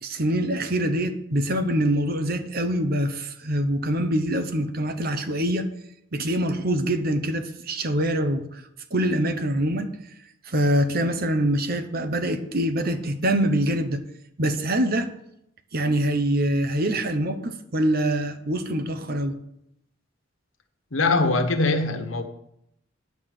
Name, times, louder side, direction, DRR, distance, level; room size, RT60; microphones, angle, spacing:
voice 1, 0.0-5.7 6.1-8.6 8.9-9.9 10.4-14.0 14.4-15.1 15.7-19.4, right 1 dB, 50° right, 1.1 m, -24 dB
voice 2, 20.9-22.2, left 3 dB, 85° left, 1.4 m, -22 dB
9.5 x 7.8 x 6.5 m
head